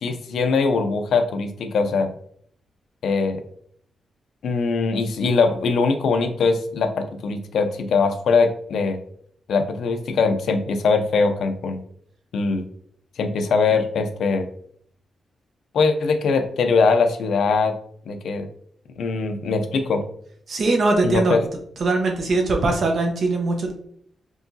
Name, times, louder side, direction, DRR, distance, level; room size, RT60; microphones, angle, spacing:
voice 1, 0.0-2.1 3.0-3.4 4.4-9.0 9.5-11.8 12.3-12.6 13.2-14.5 15.7-17.7 18.1-18.5 19.0-20.0 21.0-21.4, left 4 dB, 70° left, 7 dB, 0.5 m, -21 dB
voice 2, 20.5-21.4 21.8-23.7, right 3 dB, 50° right, 2 dB, 0.9 m, -21 dB
4.7 x 3.7 x 2.7 m, 0.64 s
wide cardioid pair, 170°, 0 cm